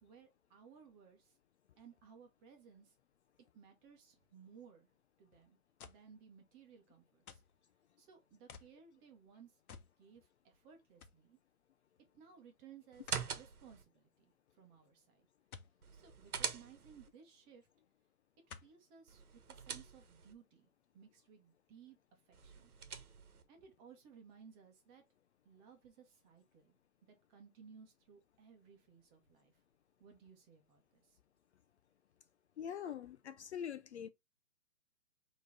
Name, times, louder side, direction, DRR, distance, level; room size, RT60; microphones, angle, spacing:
voice 1, 0.0-1.4 1.8-2.9 3.5-4.9 5.2-5.6 5.8-7.4 8.0-9.6 10.0-11.4 12.1-15.3 15.9-17.7 18.5-22.7 23.5-25.0 25.4-26.7 27.1-29.5 30.0-31.2, right 7 dB, 20° right, 1.1 m, -60 dB
sound 1, 5.8-6.1 7.3-7.6 8.5-8.8 9.7-10.0 10.4-10.5 11.0-11.2 13.1-13.3 15.5-15.8 17.2-17.3 18.5-18.8 19.5-19.6, left 6 dB, 75° left, 1.0 m, -54 dB
sound 2, 12.9-13.8 15.8-17.1 19.1-20.3 22.3-23.4, right 7 dB, 80° right, 1.2 m, -44 dB
voice 2, 32.6-34.1, left 8 dB, 50° left, 0.5 m, -43 dB
4.7 x 3.1 x 3.5 m
hypercardioid pair, 145°, 43 cm